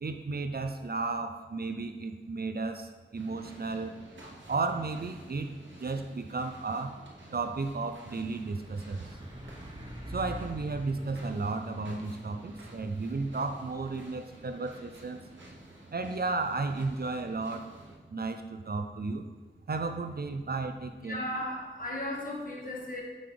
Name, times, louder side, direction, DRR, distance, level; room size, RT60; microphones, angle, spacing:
voice 1, 0.0-3.9 4.5-5.5 5.8-7.1 7.3-9.0 10.1-15.2 15.9-17.7 18.1-19.3 19.7-21.2, right 3 dB, 55° right, 7 dB, 0.4 m, -33 dB
sound 1, 3.1-17.9, right 1 dB, 80° right, 1.0 m, -52 dB
Truck, 7.0-18.9, equal, 25° right, 1.0 m, -48 dB
voice 2, 21.0-23.0, left 1 dB, 45° left, -3 dB, 1.6 m, -36 dB
5.8 x 5.2 x 3.4 m, 1.3 s
wide cardioid pair, 40°, 19 cm